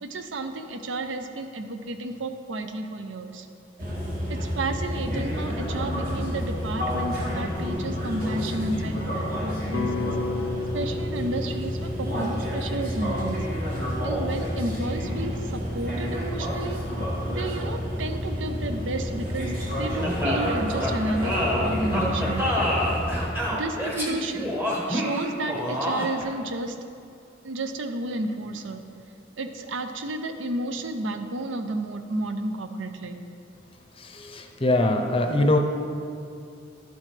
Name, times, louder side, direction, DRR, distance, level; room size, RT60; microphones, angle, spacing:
voice 1, 0.0-3.5 4.3-10.1 10.7-13.4 14.0-16.8 17.3-19.5 19.8-22.5 23.5-24.5 24.9-26.8 27.4-28.8 29.4-33.2, right 2 dB, 75° right, 7 dB, 0.6 m, -32 dB
sound 1, 3.8-23.3, equal, 50° right, 1.8 m, -29 dB
sound 2, 9.7-14.0, left 3 dB, 85° left, 0.7 m, -33 dB
sound 3, 20.0-26.3, left 1 dB, 10° right, 1.1 m, -27 dB
voice 2, 34.3-35.6, left 1 dB, 30° left, 4 dB, 0.6 m, -22 dB
12.0 x 7.7 x 3.3 m, 2.5 s
head